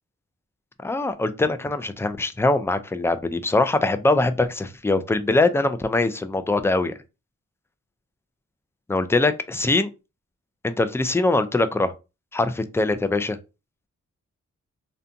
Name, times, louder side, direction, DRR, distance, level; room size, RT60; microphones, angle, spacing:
voice 1, 0.8-6.9 8.9-9.9 10.6-11.9 12.3-13.4, left 2 dB, 10° left, 0.3 m, -22 dB
2.6 x 2.2 x 2.5 m
cardioid pair, 45°, 32 cm